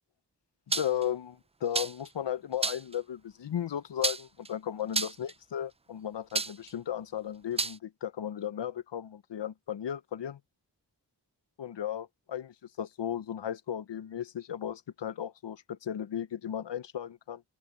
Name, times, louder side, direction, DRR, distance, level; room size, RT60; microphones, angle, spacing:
voice 1, 0.7-10.4 11.6-17.4, left 10 dB, 85° left, 0.7 m, -35 dB
sound 1, 0.7-1.0 1.7-2.1 2.6-2.9 4.0-4.5 4.9-5.3 6.3-6.7 7.6-7.8, right 3 dB, 15° right, 0.3 m, -30 dB
open air
wide cardioid pair, 50°, 41 cm